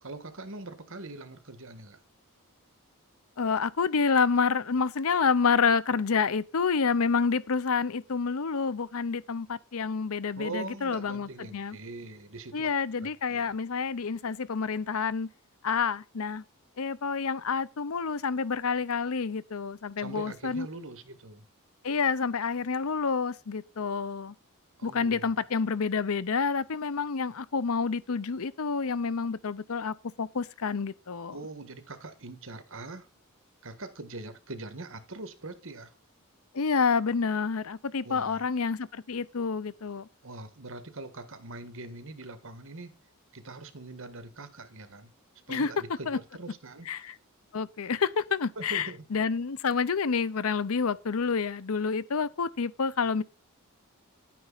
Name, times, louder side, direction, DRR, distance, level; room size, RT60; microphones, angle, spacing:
voice 1, 0.0-2.0 10.4-12.7 13.0-13.5 20.0-21.4 24.8-25.4 31.3-33.1 33.6-35.9 38.0-38.5 40.2-42.9 43.3-45.1 45.5-47.1 48.5-49.0, right 2 dB, 60° right, 1.6 m, -42 dB
voice 2, 3.4-11.8 12.5-15.3 15.6-16.4 16.8-20.7 21.8-24.3 24.8-31.4 36.5-40.1 45.5-45.7 46.1-46.2 46.9-47.0 47.5-53.2, left 5 dB, 70° left, 0.6 m, -28 dB
11.0 x 9.3 x 4.0 m
head